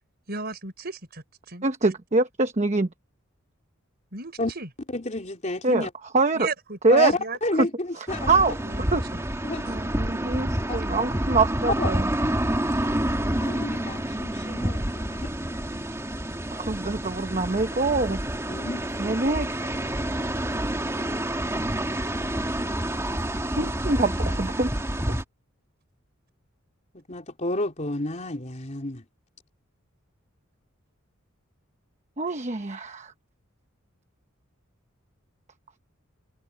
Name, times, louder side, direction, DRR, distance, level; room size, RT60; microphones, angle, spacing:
voice 1, 0.3-1.9 4.1-4.7 6.3-6.8 7.2-7.4 8.6-8.8 9.1-9.2 9.6-9.8, right 3 dB, 50° right, 5.1 m, -36 dB
voice 2, 1.6-2.9 5.6-5.9 6.1-6.5 6.8-7.1 7.6-7.7 8.0-8.6 8.9-9.0 9.6-12.0 16.5-18.2 19.0-19.9 23.6-24.7 32.2-33.1, right 3 dB, 35° right, 1.0 m, -24 dB
voice 3, 4.9-5.9 6.9-8.3 9.4-9.6 10.7-11.1 11.8-11.9 13.4-15.2 18.5-18.9 27.1-29.0, left 2 dB, 35° left, 3.6 m, -30 dB
sound 1, 8.1-25.2, right 1 dB, 15° right, 2.2 m, -28 dB
open air
head